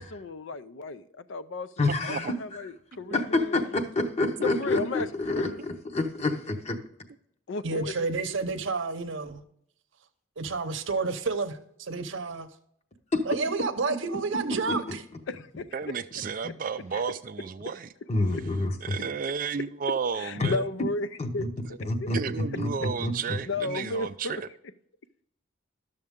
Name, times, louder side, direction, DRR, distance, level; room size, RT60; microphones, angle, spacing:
voice 1, 0.0-3.7 4.4-5.6 7.5-8.1 15.3-16.0 20.2-21.1 21.3-22.1 23.4-24.4, left 3 dB, 65° left, 0.5 m, -34 dB
voice 2, 1.8-2.3 3.1-6.8 13.1-13.2 14.7-14.8 16.4-16.5 18.1-18.7 20.4-20.5 21.2-21.5 21.9-22.2 22.6-23.1, left 2 dB, 30° left, 0.8 m, -27 dB
voice 3, 7.6-9.4 10.4-12.5 13.3-15.0, right 4 dB, 65° right, 0.8 m, -30 dB
voice 4, 15.7-17.9 18.8-20.6 22.1-24.5, right 6 dB, 40° right, 0.3 m, -32 dB
11.5 x 6.7 x 3.6 m
head